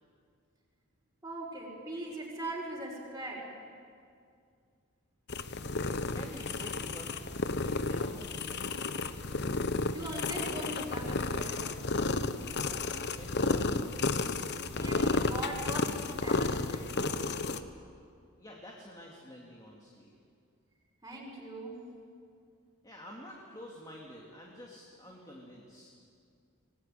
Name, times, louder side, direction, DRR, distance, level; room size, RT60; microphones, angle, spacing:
voice 1, 1.2-3.5 9.9-11.6 14.8-17.3 21.0-21.8, right 1 dB, 15° right, -4 dB, 5.3 m, -40 dB
sound 1, 5.3-17.6, left 3 dB, 50° left, 1.0 m, -32 dB
voice 2, 6.1-7.1 7.6-9.0 12.6-13.7 18.4-20.1 22.8-25.9, left 1 dB, 20° left, -2 dB, 2.7 m, -49 dB
25.0 x 18.5 x 9.3 m, 2.3 s
head